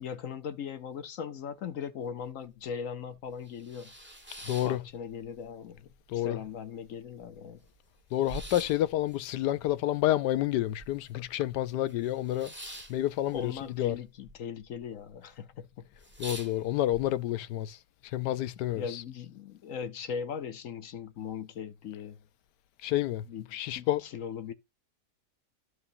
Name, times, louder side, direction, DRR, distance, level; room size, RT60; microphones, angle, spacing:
voice 1, 0.0-3.9 4.6-7.6 13.2-15.9 18.7-22.2 23.3-24.5, left 7 dB, 60° left, 1.1 m, -39 dB
sound 1, 2.2-2.3 2.7-2.8 3.3-5.5 5.8-6.5 6.9-7.0 7.1-11.3 11.6-14.4 14.6-15.2 15.5-15.6 15.9-17.0, right 1 dB, 5° right, 1.4 m, -46 dB
voice 2, 4.5-4.8 6.1-6.4 8.1-12.5 12.9-14.0 16.2-17.8 18.1-19.0 22.8-23.2 23.5-24.0, left 13 dB, 85° left, 1.2 m, -29 dB
14.0 x 4.8 x 2.7 m
omnidirectional pair, 1.8 m